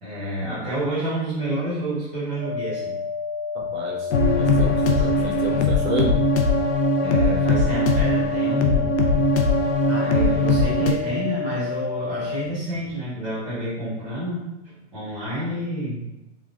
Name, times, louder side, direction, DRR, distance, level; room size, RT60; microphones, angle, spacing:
voice 1, 0.0-2.9 4.9-5.1 7.0-9.1 9.9-16.0, right 1 dB, 10° right, -15 dB, 0.7 m, -29 dB
sound 1, 2.4-12.4, left 5 dB, 30° right, 1.0 m, -30 dB
voice 2, 3.5-6.2, equal, 70° right, -1 dB, 0.8 m, -31 dB
sound 2, 4.1-10.9, left 2 dB, 70° left, 0.5 m, -20 dB
3.2 x 2.3 x 2.4 m, 0.95 s
hypercardioid pair, 175°, 36 cm